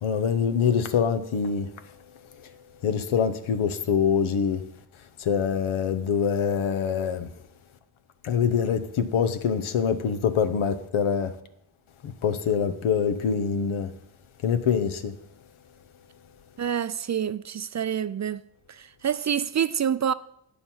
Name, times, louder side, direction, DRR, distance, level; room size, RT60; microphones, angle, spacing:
voice 1, 0.0-1.7 2.8-4.6 5.2-7.3 8.2-11.3 12.0-13.9 14.4-15.1, left 7 dB, 80° left, 1.0 m, -24 dB
voice 2, 16.6-18.4 18.7-20.1, right 8 dB, 35° right, 0.4 m, -27 dB
9.4 x 6.9 x 5.6 m
cardioid pair, 55°, 48 cm